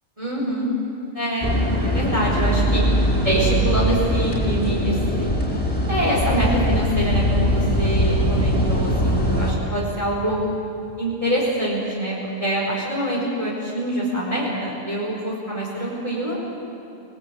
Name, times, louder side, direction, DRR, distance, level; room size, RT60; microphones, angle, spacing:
voice 1, 0.2-0.7 1.1-2.8 3.2-5.3 5.9-10.4 11.0-16.4, right 1 dB, 20° right, -5 dB, 4.7 m, -25 dB
sound 1, 1.4-9.5, equal, 5° left, 4.8 m, -21 dB
28.5 x 19.5 x 8.3 m, 2.9 s
omnidirectional pair, 1.5 m